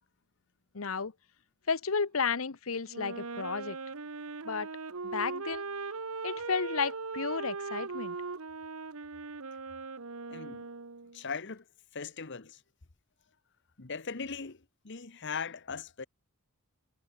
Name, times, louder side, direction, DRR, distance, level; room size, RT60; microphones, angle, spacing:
voice 1, 0.7-1.1 1.7-3.8 4.4-4.7 5.0-5.7 6.2-8.2, left 5 dB, 75° left, 1.0 m, -32 dB
Wind instrument woodwind instrument, 2.9-11.2, right 4 dB, 90° right, 1.3 m, -39 dB
voice 2, 10.3-10.7 11.1-11.6 11.9-12.6 13.8-16.1, left 5 dB, 55° left, 1.2 m, -39 dB
head